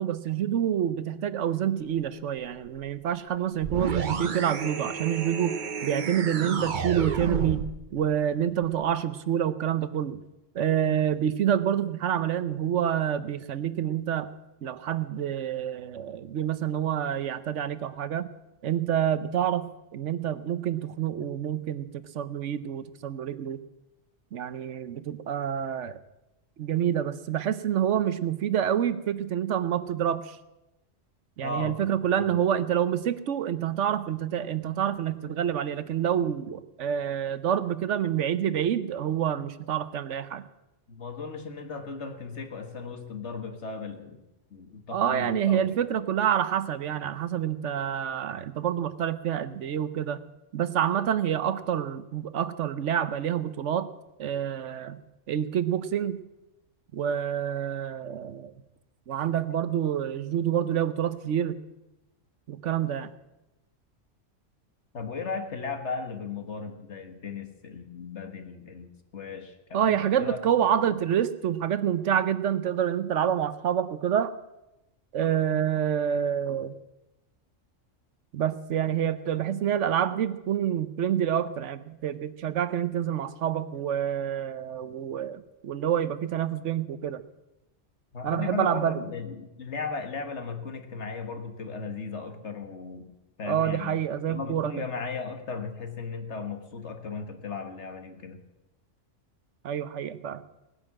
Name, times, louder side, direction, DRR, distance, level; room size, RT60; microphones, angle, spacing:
voice 1, 0.0-7.6 7.9-10.2 10.5-14.3 14.6-18.3 18.6-21.9 22.1-23.6 24.3-26.0 26.6-30.4 31.4-40.4 44.9-50.2 50.5-53.9 54.2-55.0 55.3-56.2 56.9-58.5 59.1-61.6 62.5-63.1 69.7-74.3 75.1-76.7 78.3-87.2 88.2-89.0 93.4-94.7 99.6-100.4, right 9 dB, 70° right, 14 dB, 1.1 m, -27 dB
sound 1, 3.6-7.8, right 6 dB, 45° right, 0.9 m, -31 dB
voice 2, 31.4-31.8 32.1-32.5 40.9-44.2 44.5-45.7 64.9-70.4 70.7-71.0 88.1-93.1 93.4-94.0 94.3-98.4, left 4 dB, 65° left, 7 dB, 1.8 m, -36 dB
18.5 x 10.0 x 7.5 m, 0.96 s
omnidirectional pair, 1.3 m